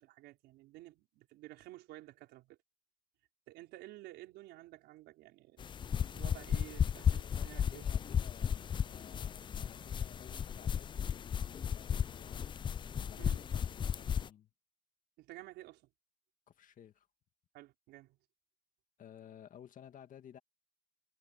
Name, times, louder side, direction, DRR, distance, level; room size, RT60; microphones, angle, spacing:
voice 1, 0.0-2.6 3.5-7.8 13.2-13.4 15.2-15.8 17.5-18.2, right 17 dB, 90° right, 5.3 m, -53 dB
sound 1, 5.6-14.3, left 8 dB, 30° left, 0.3 m, -35 dB
voice 2, 7.2-12.6 13.1-14.5 16.5-17.1 19.0-20.4, left 9 dB, 50° left, 1.9 m, -55 dB
cardioid pair, 110°, 17 cm